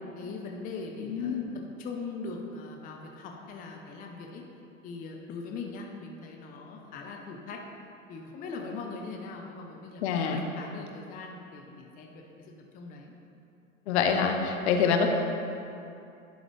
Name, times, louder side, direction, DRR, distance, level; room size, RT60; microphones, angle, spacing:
voice 1, 0.1-1.4 1.8-4.4 4.8-7.6 8.1-13.1, left 4 dB, 20° left, 1 dB, 0.6 m, -41 dB
voice 2, 1.0-1.5 10.0-10.4 13.9-15.1, left 6 dB, 55° left, 4 dB, 0.8 m, -26 dB
11.0 x 3.9 x 3.2 m, 2.7 s
hypercardioid pair, 100°, 41 cm